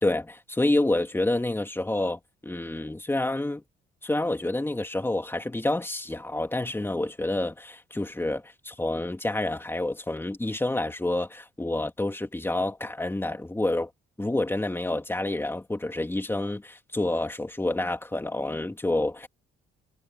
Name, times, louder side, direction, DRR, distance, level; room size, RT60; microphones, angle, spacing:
voice 1, 0.0-3.6 4.0-13.9 14.2-19.3, left 2 dB, 10° left, 2.7 m, -28 dB
cardioid pair, 90°, 20 cm